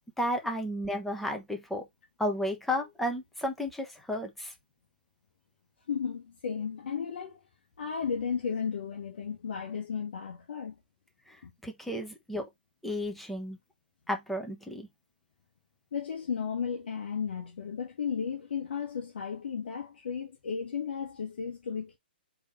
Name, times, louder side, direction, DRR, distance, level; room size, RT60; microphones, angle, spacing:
voice 1, 0.2-1.9 2.2-4.5 11.3-11.4 11.6-12.5 12.8-13.6 14.1-14.9, left 1 dB, ahead, 0.9 m, -33 dB
voice 2, 5.9-7.4 7.8-10.8 11.4-11.5 15.9-22.0, left 6 dB, 65° left, 1.1 m, -34 dB
3.7 x 3.1 x 4.2 m
hypercardioid pair, 135°, 6 cm